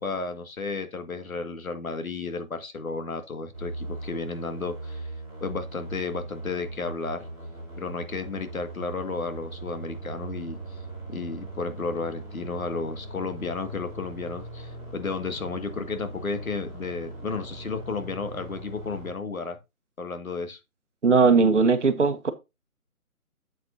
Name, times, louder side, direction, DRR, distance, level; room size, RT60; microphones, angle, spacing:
voice 1, 0.0-5.1 5.4-7.3 7.8-10.8 11.1-19.6 20.0-20.6, left 4 dB, 65° left, 2.0 m, -33 dB
sound 1, 3.5-19.1, right 2 dB, 10° left, 3.1 m, -40 dB
voice 2, 21.0-22.3, right 4 dB, 50° right, 1.4 m, -19 dB
8.5 x 7.9 x 2.7 m
hypercardioid pair, 175°, 44 cm